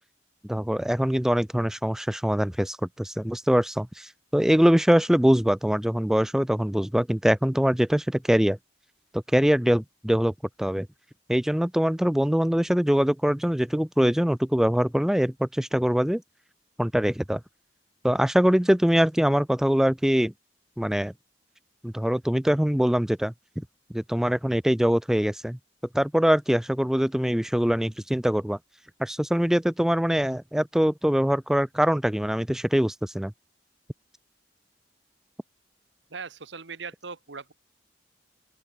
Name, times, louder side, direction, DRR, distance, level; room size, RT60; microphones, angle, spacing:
voice 1, 0.5-8.6 9.1-10.3 10.6-10.9 11.3-16.2 16.8-17.4 18.0-20.3 20.8-21.1 21.8-23.6 23.9-25.6 25.9-28.6 29.0-33.3, equal, 5° right, 0.3 m, -23 dB
voice 2, 36.1-37.5, right 5 dB, 80° right, 1.4 m, -39 dB
open air
head